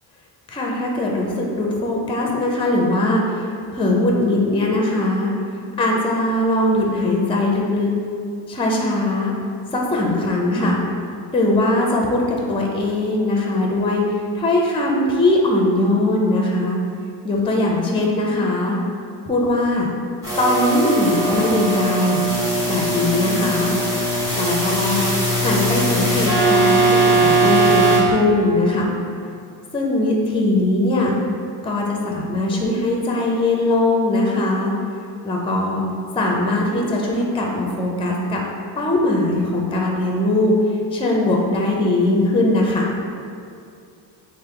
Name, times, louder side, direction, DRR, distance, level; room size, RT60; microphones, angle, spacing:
voice 1, 0.5-5.3 5.8-7.9 8.5-9.3 9.7-10.8 11.3-16.8 17.2-18.8 19.2-19.9 20.4-22.2 22.6-23.7 24.3-25.0 25.4-28.9 29.7-31.1 31.6-34.7 35.2-35.8 36.1-38.4 38.8-42.9, left 2 dB, 10° left, -1 dB, 0.5 m, -20 dB
sound 1, 20.2-28.0, right 2 dB, 10° right, 1.4 m, -19 dB
3.3 x 2.1 x 4.3 m, 2.5 s
cardioid pair, 85°, 45 cm